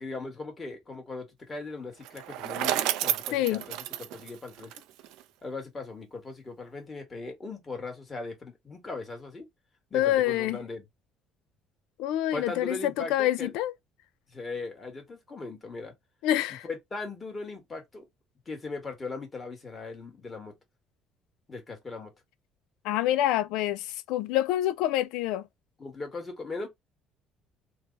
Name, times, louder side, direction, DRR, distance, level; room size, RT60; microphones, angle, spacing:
voice 1, 0.0-4.7 5.4-9.5 9.9-10.8 12.3-13.5 14.3-15.9 16.6-18.1 18.4-20.5 21.5-22.1 25.8-26.7, left 3 dB, 25° left, 1.6 m, -39 dB
Bicycle, 2.0-5.2, right 13 dB, 85° right, 0.4 m, -31 dB
voice 2, 3.3-3.6 9.9-10.6 12.0-13.7 16.2-16.6 22.8-25.4, left 13 dB, 85° left, 0.3 m, -27 dB
3.2 x 2.3 x 3.9 m
cardioid pair, 105°, 0 cm